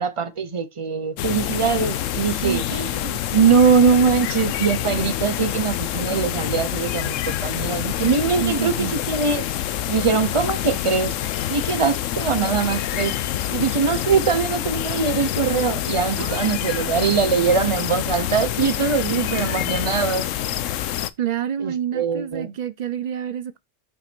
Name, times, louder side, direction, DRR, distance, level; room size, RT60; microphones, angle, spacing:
voice 1, 0.0-9.5 9.9-11.2 11.5-13.2 13.5-20.3 21.6-22.5, right 5 dB, 30° right, 0.6 m, -22 dB
sound 1, 1.2-21.1, left 12 dB, 80° left, 1.0 m, -26 dB
voice 2, 8.4-8.9 16.2-16.4 21.2-23.6, right 10 dB, 80° right, 0.3 m, -28 dB
5.8 x 4.7 x 4.3 m
omnidirectional pair, 1.3 m